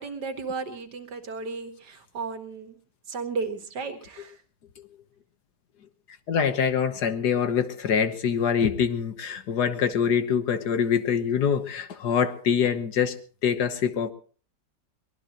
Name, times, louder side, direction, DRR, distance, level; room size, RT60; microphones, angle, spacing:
voice 1, 0.0-2.8 3.1-4.4, right 4 dB, 65° right, 7 dB, 2.3 m, -34 dB
voice 2, 6.3-14.1, left 7 dB, 65° left, 10 dB, 1.6 m, -24 dB
23.0 x 19.0 x 3.0 m, 0.39 s
omnidirectional pair, 1.9 m